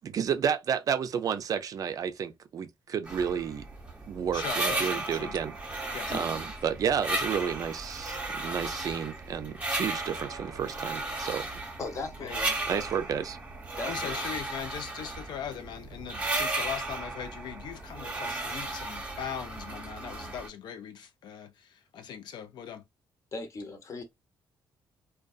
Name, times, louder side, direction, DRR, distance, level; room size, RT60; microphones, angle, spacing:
voice 1, 0.1-3.7 4.1-5.6 6.1-11.5 12.7-13.4, right 7 dB, 50° right, 0.4 m, -31 dB
sound 1, 3.1-20.5, right 2 dB, 15° right, 0.9 m, -35 dB
voice 2, 4.3-5.4 5.9-6.1 12.2-12.5 13.9-22.8, left 8 dB, 70° left, 0.5 m, -40 dB
voice 3, 11.8-12.8 13.8-14.2 23.3-24.0, left 3 dB, 40° left, 0.8 m, -38 dB
2.5 x 2.2 x 2.3 m
cardioid pair, 105°, 8 cm